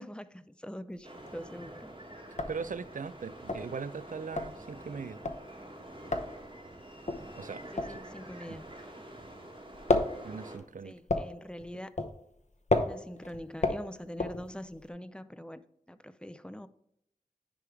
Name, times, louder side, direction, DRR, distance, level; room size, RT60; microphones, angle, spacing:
voice 1, 0.0-1.9 7.7-8.7 9.0-9.1 10.8-11.9 12.8-16.7, equal, 5° left, 0.5 m, -44 dB
sound 1, 1.0-1.5 1.8-1.9 2.2-9.3 9.5-14.9, left 2 dB, 55° left, 0.8 m, -33 dB
sound 2, 1.0-10.6, right 1 dB, 40° right, 1.7 m, -47 dB
voice 2, 2.4-5.2 7.4-7.6 7.9-8.0 8.5-8.6 10.2-11.0, right 5 dB, 70° right, 0.4 m, -40 dB
10.0 x 3.5 x 4.6 m
wide cardioid pair, 50°, 14 cm